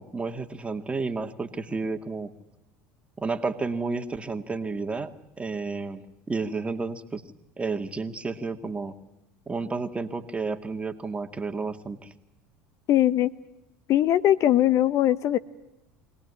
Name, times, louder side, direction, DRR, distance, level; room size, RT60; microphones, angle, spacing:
voice 1, 0.0-2.3 3.2-5.1 5.4-7.2 7.6-8.9 9.5-12.1, right 4 dB, 20° right, 8 dB, 2.1 m, -31 dB
voice 2, 12.9-13.3 13.9-15.4, left 12 dB, 50° left, 16 dB, 0.9 m, -20 dB
24.5 x 18.5 x 9.9 m, 0.93 s
hypercardioid pair, 80°, 7 cm